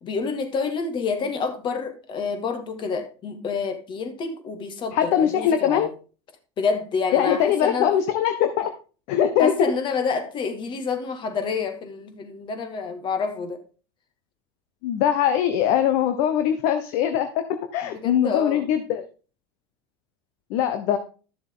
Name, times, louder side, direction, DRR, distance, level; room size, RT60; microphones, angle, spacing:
voice 1, 0.0-5.9 6.6-7.9 9.4-13.6 17.8-18.6, left 5 dB, 40° left, 2.1 m, -28 dB
voice 2, 4.9-5.9 7.1-8.7 9.1-9.7 14.8-17.4 17.7-19.0 20.5-21.0, left 9 dB, 60° left, 1.1 m, -21 dB
12.5 x 7.0 x 3.8 m
hypercardioid pair, 90°, 13 cm